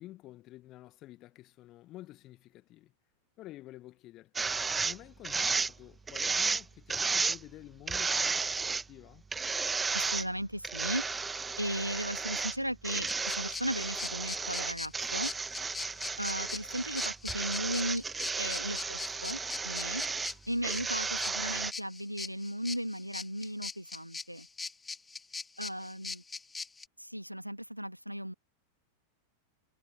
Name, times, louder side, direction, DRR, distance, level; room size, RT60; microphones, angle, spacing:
voice 1, 0.0-2.9 3.4-4.5 4.8-9.2, left 16 dB, 35° left, 1.9 m, -50 dB
sound 1, 4.4-5.0 5.2-5.7 6.1-6.6 6.9-7.4 7.9-8.8 9.3-10.3 10.6-12.6 12.8-20.3 20.6-21.7, right 4 dB, 15° right, 1.5 m, -33 dB
voice 2, 9.9-15.3 16.2-18.0 18.4-20.0 20.5-24.5 25.6-26.2 27.0-28.3, equal, 90° right, 2.0 m, -36 dB
sound 2, 13.1-26.8, left 4 dB, 10° left, 4.1 m, -41 dB
figure-of-eight pair, 90°, 0 cm